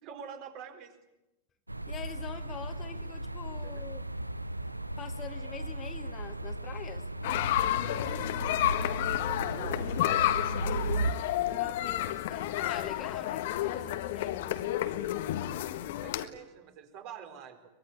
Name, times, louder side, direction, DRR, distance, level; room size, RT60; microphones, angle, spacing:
voice 1, 0.0-0.9 3.6-3.8 8.7-10.6 16.0-17.7, right 8 dB, 45° right, 6 dB, 4.3 m, -47 dB
sound 1, 1.7-11.1, right 2 dB, 85° right, 0.8 m, -36 dB
voice 2, 1.9-4.0 5.0-7.1 11.5-14.4, left 8 dB, 25° left, 8 dB, 1.9 m, -44 dB
sound 2, 7.2-16.3, left 13 dB, 55° left, 1.5 m, -31 dB
24.0 x 22.0 x 9.9 m, 0.96 s
figure-of-eight pair, 90°, 0 cm